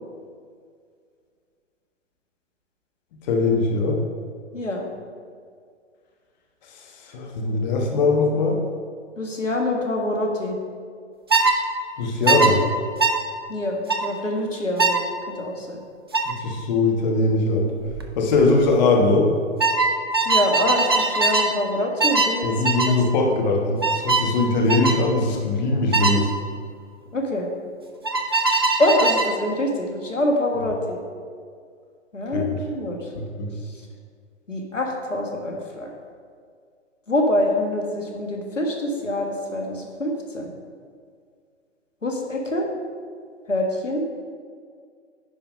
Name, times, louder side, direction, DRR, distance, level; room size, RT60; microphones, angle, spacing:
voice 1, 3.3-4.0 6.7-8.6 12.0-12.6 16.3-17.7 18.2-19.3 22.4-26.3 32.3-32.6 33.1-33.5, left 3 dB, 35° left, 1 dB, 1.2 m, -21 dB
voice 2, 4.5-4.9 9.2-10.5 13.5-15.0 15.3-15.8 20.2-22.5 22.8-22.9 27.1-27.5 28.8-31.0 32.1-33.0 34.5-35.9 37.1-40.5 42.0-42.7 43.5-44.1, left 1 dB, 90° left, 1 dB, 1.6 m, -25 dB
sound 1, 11.3-11.6 12.3-12.5 13.0-13.2 13.9-14.1 14.8-15.0 16.1-16.3 17.8-18.0 18.3-18.7 19.6-21.5 22.0-22.4 22.6-22.9 23.8-24.3 24.7-25.0 25.9-26.2 28.0-29.3, right 3 dB, 20° right, 0.3 m, -21 dB
9.9 x 5.0 x 5.2 m, 2.1 s
figure-of-eight pair, 125°, 36 cm